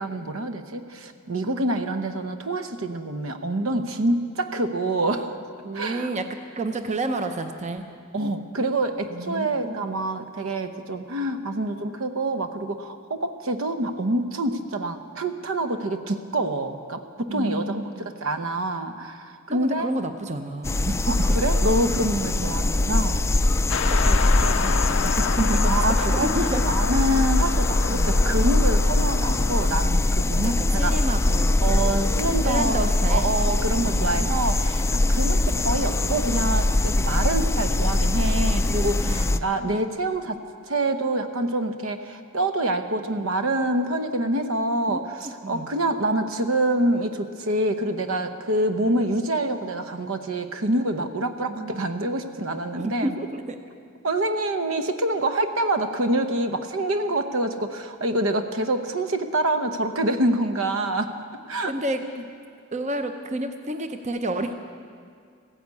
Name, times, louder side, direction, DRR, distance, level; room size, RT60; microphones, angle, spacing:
voice 1, 0.0-5.3 5.7-6.2 8.1-19.9 21.1-23.2 25.7-26.3 26.7-31.0 31.6-40.4 40.7-53.2 54.0-61.1 61.5-61.7 62.0-62.1, right 1 dB, 75° right, 8 dB, 0.9 m, -26 dB
voice 2, 5.6-6.2 6.5-7.8 9.1-9.7 17.3-18.1 19.5-21.2 22.3-22.6 23.9-26.6 27.9-28.1 30.6-31.6 32.4-33.3 33.7-34.3 39.0-39.5 44.9-45.0 45.4-45.7 51.5-51.9 52.7-53.6 61.7-62.0 62.7-64.5, right 2 dB, 35° right, 7 dB, 0.7 m, -30 dB
sound 1, 20.6-39.4, left 2 dB, 15° left, 0.3 m, -22 dB
sound 2, 23.7-29.7, left 7 dB, 75° left, 0.5 m, -30 dB
15.5 x 10.0 x 8.2 m, 2.2 s
head